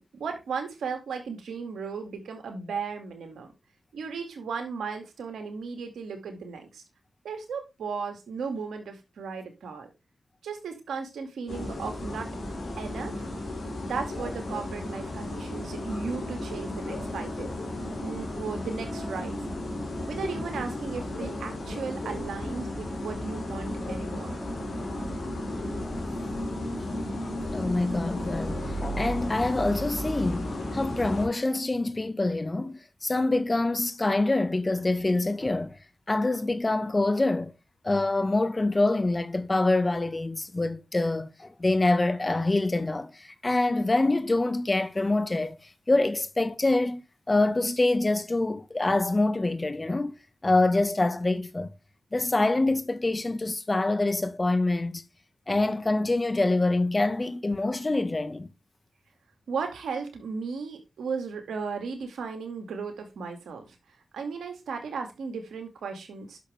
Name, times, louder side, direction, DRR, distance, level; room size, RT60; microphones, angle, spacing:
voice 1, 0.0-3.5 3.9-6.8 7.2-9.9 10.4-12.3 12.8-13.2 13.8-17.6 18.0-19.4 20.1-24.4 59.5-63.8 64.1-66.4, right 5 dB, 85° right, 2.3 m, -35 dB
sound 1, 11.5-31.3, left 1 dB, 75° left, 5.3 m, -34 dB
voice 2, 27.5-35.8 36.1-37.5 37.8-45.6 45.9-47.0 47.3-50.1 50.4-51.7 52.1-55.0 55.5-58.5, left 2 dB, 35° left, 1.4 m, -25 dB
10.5 x 6.6 x 3.5 m
cardioid pair, 40°, 0 cm